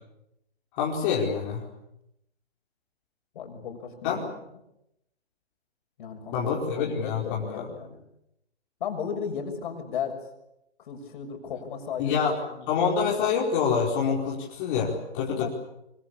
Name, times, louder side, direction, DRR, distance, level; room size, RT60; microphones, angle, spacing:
voice 1, 0.8-1.6 4.0-4.3 6.3-7.7 12.0-12.4 12.7-15.5, left 6 dB, 30° left, -4 dB, 5.0 m, -26 dB
voice 2, 3.4-4.2 6.0-6.4 6.8-8.0 8.8-10.2 10.8-12.7 15.3-15.5, left 7 dB, 45° left, 5 dB, 6.8 m, -35 dB
25.0 x 24.5 x 8.7 m, 0.84 s
hypercardioid pair, 140°, 34 cm